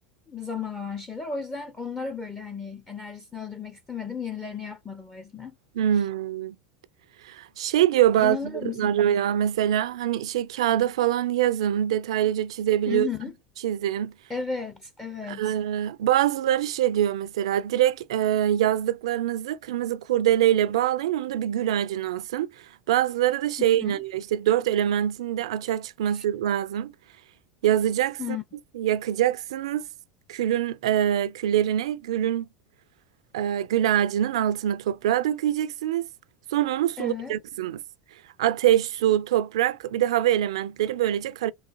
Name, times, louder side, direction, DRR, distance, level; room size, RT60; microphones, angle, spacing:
voice 1, 0.3-5.5 8.2-9.1 12.9-13.3 14.3-15.5 23.8-24.0 26.1-26.2 28.2-28.4 37.0-37.4, left 6 dB, 15° left, 0.7 m, -34 dB
voice 2, 5.7-6.6 7.2-13.1 13.6-14.1 15.3-22.5 22.9-26.9 27.6-28.4 28.7-29.9 30.3-32.5 33.3-36.1 36.5-37.8 38.4-41.5, right 11 dB, 75° right, 0.4 m, -24 dB
3.9 x 2.5 x 2.6 m
hypercardioid pair, 90°, 3 cm